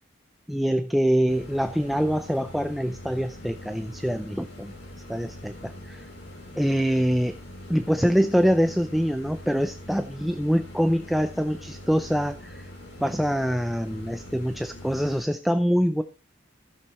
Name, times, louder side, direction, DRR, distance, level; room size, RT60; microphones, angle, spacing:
voice 1, 0.5-4.7 5.1-6.1 6.6-7.3 7.7-12.7 13.0-16.0, equal, ahead, 9 dB, 0.5 m, -24 dB
sound 1, 1.3-15.2, left 1 dB, 75° left, 6.8 m, -43 dB
15.0 x 6.6 x 4.3 m, 0.34 s
head